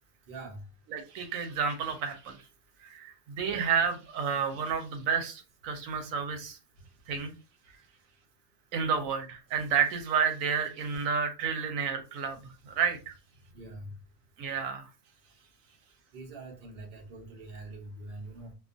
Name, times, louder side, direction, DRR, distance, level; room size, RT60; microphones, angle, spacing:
voice 1, 0.3-0.6 13.5-13.9 16.1-18.5, right 2 dB, 50° right, 0.8 m, -44 dB
voice 2, 0.9-2.4 2.8-6.6 7.1-7.3 8.7-12.4 12.7-13.1 14.4-14.9, right 6 dB, 85° right, 1.0 m, -30 dB
2.3 x 2.3 x 2.5 m
omnidirectional pair, 1.4 m